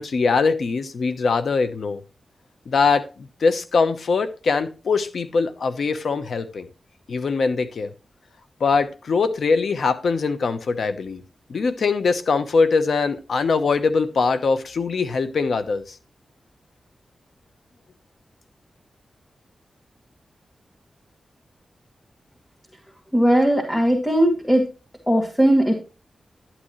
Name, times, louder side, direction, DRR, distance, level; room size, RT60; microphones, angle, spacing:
voice 1, 0.0-2.0 2.7-6.7 7.1-7.9 8.6-11.2 11.5-16.0, left 4 dB, 75° left, 11 dB, 1.0 m, -22 dB
voice 2, 23.1-24.6 25.1-25.8, right 1 dB, 10° left, 1 dB, 2.1 m, -18 dB
11.0 x 9.0 x 3.1 m, 0.32 s
wide cardioid pair, 80°, 0 cm